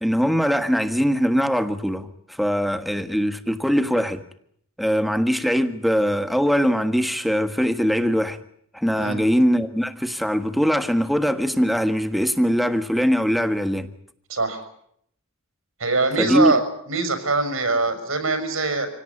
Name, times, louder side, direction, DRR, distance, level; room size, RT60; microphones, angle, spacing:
voice 1, 0.0-4.2 4.8-8.4 8.7-13.9 16.2-16.5, equal, ahead, 1.6 m, -21 dB
voice 2, 14.3-14.6 15.8-16.6 16.9-18.9, right 3 dB, 85° right, 6.6 m, -22 dB
26.5 x 18.0 x 9.9 m
head